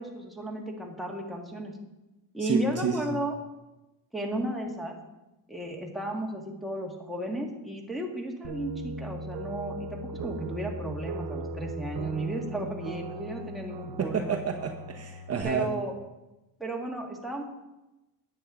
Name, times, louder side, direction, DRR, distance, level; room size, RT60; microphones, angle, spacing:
voice 1, 0.0-1.8 2.3-3.4 4.1-5.0 5.5-14.4 15.4-15.9 16.6-17.4, right 1 dB, ahead, -1 dB, 1.8 m, -34 dB
voice 2, 2.4-3.0 14.0-15.7, right 6 dB, 40° right, 2 dB, 1.0 m, -29 dB
sound 1, 8.4-15.4, right 2 dB, 75° right, 0.9 m, -38 dB
10.0 x 8.5 x 3.8 m, 1.0 s
cardioid pair, 90°, 40 cm